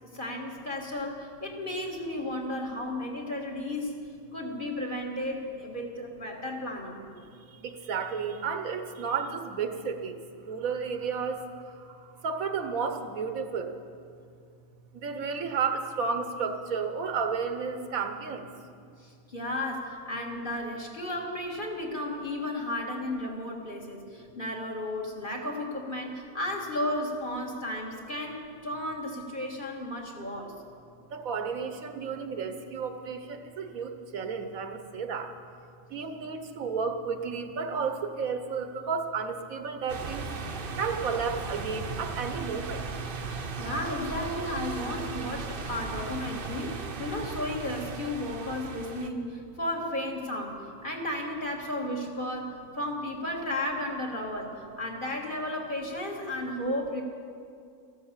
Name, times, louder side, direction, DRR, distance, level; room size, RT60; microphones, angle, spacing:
voice 1, 0.0-3.9 4.3-7.0 19.0-30.6 43.6-57.0, left 1 dB, 35° left, -1 dB, 2.0 m, -34 dB
voice 2, 7.6-10.1 10.5-11.4 12.2-13.7 15.0-18.5 31.1-35.3 35.9-40.3 40.8-42.8, right 5 dB, 75° right, 7 dB, 1.4 m, -32 dB
sound 1, 39.9-49.1, right 4 dB, 45° right, 1.0 m, -37 dB
14.0 x 12.0 x 7.3 m, 2.4 s
omnidirectional pair, 1.5 m